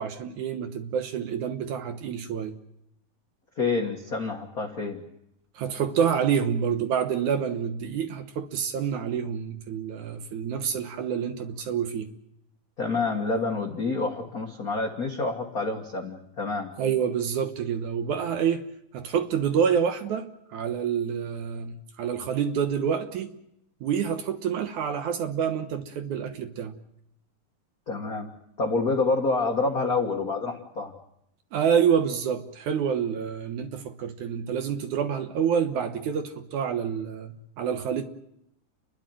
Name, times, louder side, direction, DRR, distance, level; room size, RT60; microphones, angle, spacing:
voice 1, 0.0-2.6 5.6-12.1 16.8-18.6 18.9-23.3 23.8-26.7 31.5-38.0, right 7 dB, 65° right, 7 dB, 2.3 m, -27 dB
voice 2, 3.6-5.0 12.8-16.7 27.9-28.3 28.6-30.9, left 3 dB, 50° left, 2 dB, 1.0 m, -27 dB
30.0 x 12.0 x 9.1 m, 0.80 s
omnidirectional pair, 4.1 m